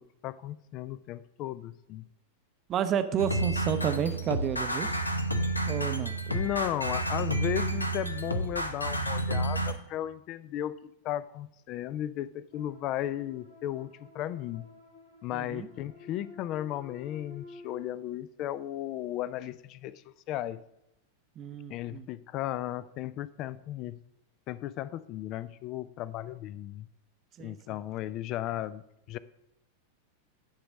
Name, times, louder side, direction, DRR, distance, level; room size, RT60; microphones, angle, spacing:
voice 1, 0.0-2.1 6.3-14.7 15.2-20.6 21.7-24.0 24.5-26.9 27.4-28.8 29.1-29.2, left 13 dB, 40° left, 18 dB, 0.4 m, -35 dB
voice 2, 2.7-4.9 5.7-6.1 15.3-15.7 21.4-22.1 27.4-27.6, right 9 dB, 30° right, 10 dB, 0.6 m, -31 dB
sound 1, 3.2-9.7, right 1 dB, 85° left, 0.7 m, -30 dB
sound 2, 12.5-17.9, left 3 dB, 70° left, 2.8 m, -51 dB
10.0 x 4.0 x 6.2 m, 0.86 s
figure-of-eight pair, 90°, 0 cm